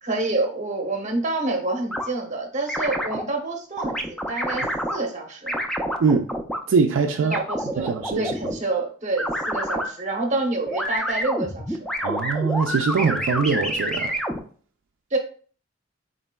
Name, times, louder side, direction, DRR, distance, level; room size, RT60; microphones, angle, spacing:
voice 1, 0.0-5.5 7.2-11.9 15.1-15.2, right 2 dB, 40° right, 0.8 m, -28 dB
sound 1, 1.9-2.1 2.7-3.2 3.8-5.0 5.5-6.6 7.3-8.6 9.2-9.9 10.7-14.4, equal, 5° left, 0.3 m, -27 dB
voice 2, 6.0-6.3 6.7-7.3 7.8-8.3 12.0-14.2, right 5 dB, 70° right, 0.4 m, -22 dB
4.1 x 3.8 x 2.2 m
head